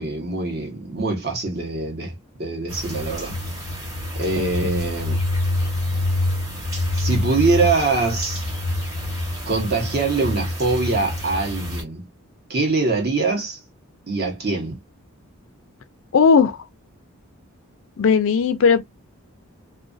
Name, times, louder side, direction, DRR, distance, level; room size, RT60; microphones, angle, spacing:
voice 1, 0.0-3.4 4.1-5.2 6.9-8.4 9.5-12.1 12.5-13.6 14.1-14.8, right 3 dB, 45° right, 0.8 m, -23 dB
sound 1, 2.7-11.8, left 1 dB, 15° right, 0.9 m, -26 dB
voice 2, 16.1-16.6 18.0-18.8, left 5 dB, 60° left, 0.4 m, -16 dB
2.3 x 2.3 x 2.4 m
head